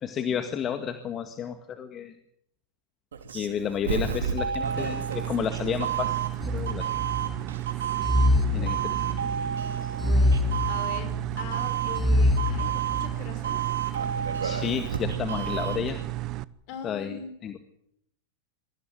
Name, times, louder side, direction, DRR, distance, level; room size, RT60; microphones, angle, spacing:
voice 1, 0.0-2.1 3.3-6.2 6.5-6.9 8.5-9.2 9.8-10.1 14.4-16.0 16.8-17.6, left 8 dB, 30° left, 7 dB, 1.9 m, -31 dB
Doorbell, 3.1-15.9, right 8 dB, 90° right, 3.9 m, -31 dB
sound 1, 4.6-16.4, right 16 dB, 45° right, 0.8 m, -33 dB
sound 2, 6.4-7.4 8.0-9.3 10.0-11.3 12.0-13.1, left 2 dB, 5° left, 3.1 m, -25 dB
voice 2, 8.0-9.3 10.0-13.6 16.7-17.4, left 4 dB, 55° left, 9 dB, 6.2 m, -41 dB
23.5 x 15.5 x 9.3 m, 0.76 s
hypercardioid pair, 115°, 0 cm